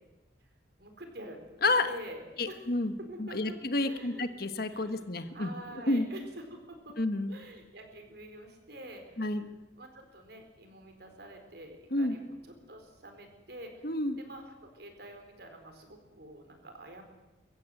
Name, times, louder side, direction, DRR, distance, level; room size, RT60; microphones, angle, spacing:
voice 1, 0.8-2.7 3.0-3.6 3.8-4.3 4.7-5.0 5.3-7.0 7.3-9.2 9.8-12.3 12.7-17.0, right 1 dB, 55° right, 5 dB, 4.3 m, -47 dB
voice 2, 1.6-1.9 2.4-2.9 3.2-5.5 5.9-6.1 7.0-7.4 9.2-9.5 11.9-12.1 13.8-14.2, left 2 dB, 50° left, 9 dB, 1.4 m, -30 dB
23.0 x 15.0 x 9.2 m, 1.1 s
head